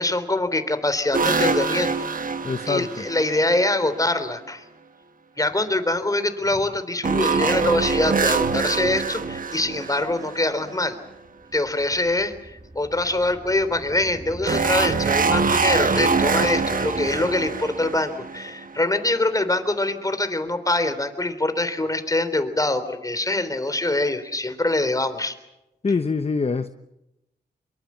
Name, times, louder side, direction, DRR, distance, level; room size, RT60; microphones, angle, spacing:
voice 1, 0.0-1.9 2.6-4.6 5.4-11.0 11.5-25.4, left 2 dB, 20° left, 10 dB, 3.4 m, -24 dB
sound 1, 1.1-3.7 7.0-10.8 14.5-18.8, right 4 dB, 50° right, 1.5 m, -24 dB
voice 2, 2.4-2.9 25.8-26.7, left 4 dB, 35° left, 10 dB, 1.0 m, -24 dB
sound 2, 11.3-18.2, right 1 dB, 25° right, 2.0 m, -39 dB
25.0 x 23.0 x 7.4 m, 0.91 s
cardioid pair, 75°, 18 cm